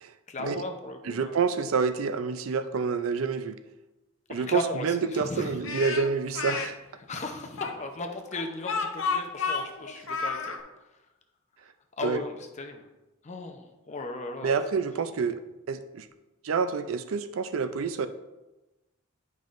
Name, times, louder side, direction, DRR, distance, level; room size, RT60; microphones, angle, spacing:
voice 1, 0.3-1.4 4.3-5.6 7.1-10.9 12.0-12.8 13.2-14.5, left 2 dB, 35° left, 4 dB, 0.7 m, -36 dB
voice 2, 1.1-3.6 4.3-6.8 12.0-12.2 14.4-15.4 15.7-16.1 16.4-18.1, right 5 dB, 80° right, 11 dB, 0.4 m, -28 dB
Speech, 5.6-6.7 7.6-10.6, left 5 dB, 70° left, 0.7 m, -31 dB
9.3 x 5.4 x 2.5 m, 1.0 s
head